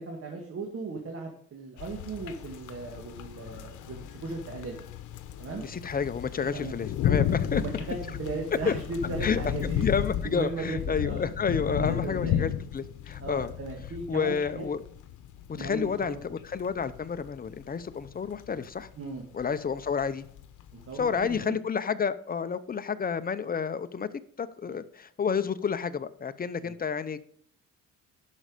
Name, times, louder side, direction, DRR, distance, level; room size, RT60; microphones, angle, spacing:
voice 1, 0.0-4.8 5.4-5.6 6.4-6.7 7.5-9.9 10.2-11.2 11.7-12.4 13.2-14.6 15.6-16.2 19.0-19.2 20.7-21.6 24.7-24.8 26.6-26.7, right 3 dB, 50° right, 1 dB, 2.0 m, -37 dB
sound 1, 1.8-21.5, left 10 dB, 85° left, 0.9 m, -34 dB
voice 2, 5.6-7.6 8.6-8.7 9.2-9.4 9.8-13.5 14.1-14.8 15.6-18.9 19.3-20.2 20.9-24.1 24.4-27.2, left 6 dB, 30° left, 12 dB, 0.8 m, -30 dB
11.0 x 6.3 x 5.1 m, 0.62 s
cardioid pair, 90°, 30 cm